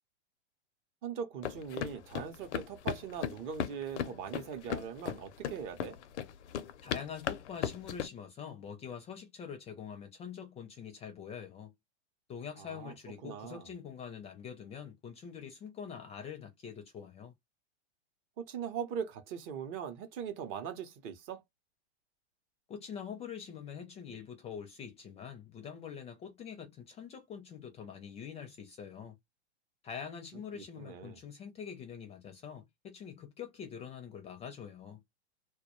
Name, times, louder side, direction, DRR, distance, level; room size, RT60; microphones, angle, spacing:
voice 1, 1.0-6.0 12.6-12.9 13.2-13.7 18.4-21.4 30.5-31.2, right 7 dB, 35° right, 0.6 m, -40 dB
sound 1, 1.4-8.1, left 9 dB, 80° left, 0.5 m, -37 dB
voice 2, 6.8-11.7 12.3-17.3 22.7-29.2 29.8-35.0, left 7 dB, 20° left, 0.4 m, -45 dB
2.2 x 2.2 x 2.9 m
hypercardioid pair, 125°, 34 cm